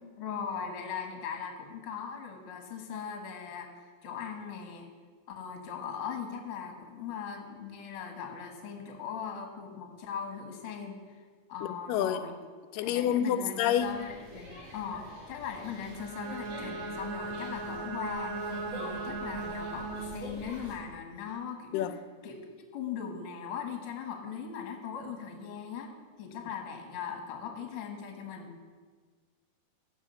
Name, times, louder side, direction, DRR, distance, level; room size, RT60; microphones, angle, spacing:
voice 1, 0.2-4.9 5.3-11.2 11.5-12.3 12.8-22.4 22.7-25.9 26.2-28.5, left 7 dB, 55° left, 3 dB, 1.7 m, -39 dB
voice 2, 11.6-12.2 12.7-13.9 21.7-21.9, left 10 dB, 90° left, 11 dB, 2.2 m, -28 dB
sound 1, 13.8-20.7, left 1 dB, 50° right, 3.5 m, -47 dB
Bowed string instrument, 15.9-20.4, right 3 dB, 70° right, 2.1 m, -38 dB
12.0 x 4.9 x 6.8 m, 1.5 s
omnidirectional pair, 3.7 m